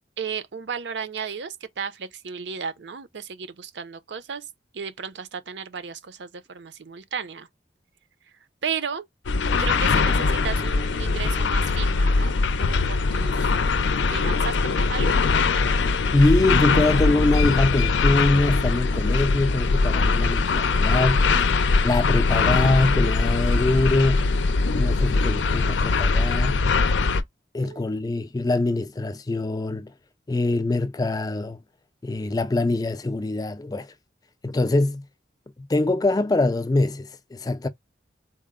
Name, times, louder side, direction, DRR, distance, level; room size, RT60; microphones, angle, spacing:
voice 1, 0.2-4.5 4.7-7.5 8.6-9.1 9.6-13.5 14.1-15.1 27.6-28.0, right 6 dB, 75° right, 0.6 m, -34 dB
sound 1, 9.3-27.2, left 4 dB, 80° left, 0.5 m, -21 dB
voice 2, 16.1-21.3 21.8-24.3 24.7-26.6 27.5-29.9 30.3-31.6 32.0-33.9 34.4-35.0 35.6-37.7, left 2 dB, 20° left, 0.3 m, -23 dB
4.2 x 2.0 x 3.6 m
head